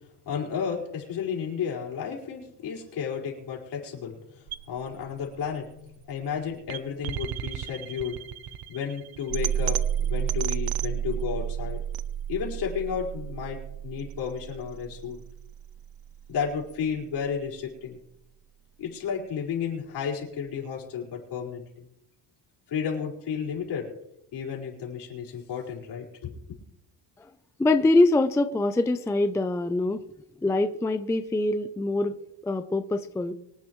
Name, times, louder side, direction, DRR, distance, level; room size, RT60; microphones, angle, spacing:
voice 1, 0.2-8.2 8.7-11.8 12.3-15.2 16.3-18.0 18.8-21.9 22.7-23.9 24.3-26.4, left 7 dB, 65° left, -2 dB, 4.9 m, -32 dB
sound 1, 4.5-16.5, right 10 dB, 55° right, 0.7 m, -32 dB
voice 2, 27.6-30.0 30.4-32.2 32.4-33.3, left 2 dB, 5° left, 9 dB, 0.4 m, -24 dB
25.0 x 9.6 x 3.1 m, 0.81 s
cardioid pair, 170°, 43 cm